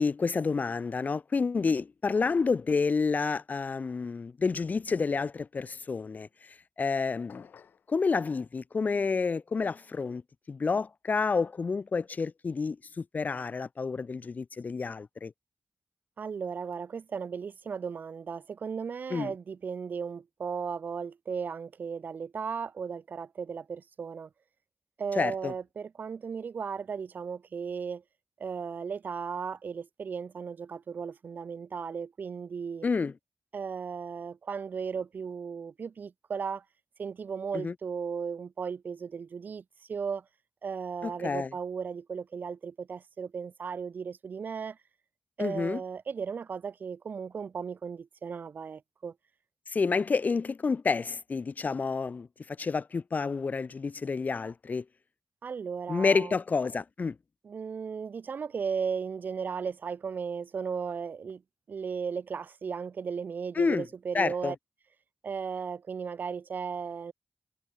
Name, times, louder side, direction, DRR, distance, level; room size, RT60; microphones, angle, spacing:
voice 1, 0.0-7.4 7.9-10.2 10.5-15.3 19.1-19.3 25.1-25.5 32.8-33.1 37.5-37.7 41.0-41.5 45.4-45.8 49.7-54.8 55.9-57.1 63.5-63.9 64.1-64.5, left 4 dB, 60° left, 1.3 m, -29 dB
sound 1, 7.3-7.9, left 7 dB, 90° left, 5.7 m, -52 dB
voice 2, 16.2-24.3 25.0-28.0 28.4-32.9 33.5-36.6 37.0-39.6 39.9-40.2 40.6-44.8 45.4-49.1 55.4-56.4 57.4-61.4 61.7-64.6 65.2-67.1, right 6 dB, 80° right, 1.7 m, -36 dB
cardioid pair, 50°, 3 cm